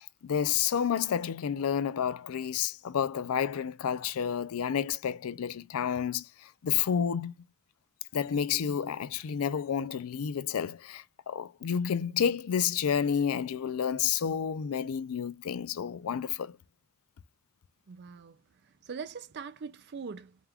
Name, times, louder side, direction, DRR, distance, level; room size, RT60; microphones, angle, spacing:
voice 1, 0.0-6.2 6.6-7.3 8.1-16.5, left 8 dB, 75° left, 0.4 m, -30 dB
voice 2, 17.9-18.4 18.8-20.4, right 5 dB, 50° right, 0.4 m, -41 dB
4.6 x 2.4 x 3.4 m
head